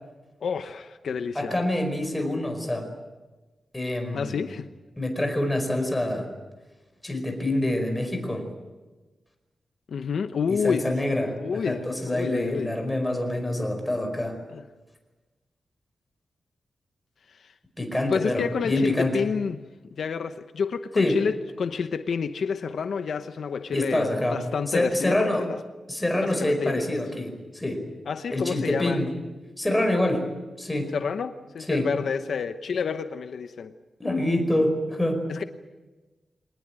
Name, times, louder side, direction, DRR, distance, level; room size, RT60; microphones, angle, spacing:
voice 1, 0.4-1.5 4.1-4.7 9.9-10.9 11.4-12.7 14.5-14.6 17.3-17.5 18.1-19.7 20.0-25.6 26.2-26.8 28.1-29.0 30.9-33.7 35.3-35.4, left 6 dB, 70° left, 9 dB, 0.9 m, -29 dB
voice 2, 1.4-2.9 3.7-4.5 5.0-6.3 7.0-8.5 10.5-14.4 17.8-19.2 21.0-21.2 23.7-24.4 24.7-25.4 25.9-27.8 28.3-29.1 29.6-30.3 30.6-30.9 31.7-31.9 34.0-35.2, left 1 dB, 10° left, 5 dB, 5.1 m, -26 dB
24.0 x 19.5 x 9.0 m, 1.2 s
wide cardioid pair, 125°, 0 cm